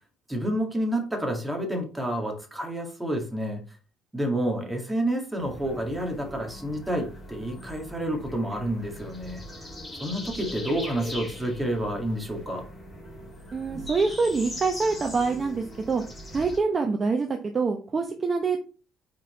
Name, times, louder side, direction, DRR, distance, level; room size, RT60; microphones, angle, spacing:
voice 1, 0.3-3.8 4.1-9.4 10.0-12.7, right 1 dB, 5° right, 2 dB, 1.9 m, -29 dB
sound 1, 5.4-16.6, left 1 dB, 20° left, 2.6 m, -40 dB
voice 2, 13.5-16.0 16.3-18.6, right 4 dB, 30° right, 4 dB, 0.7 m, -25 dB
5.1 x 4.3 x 4.3 m, 0.35 s
cardioid pair, 110°, 0 cm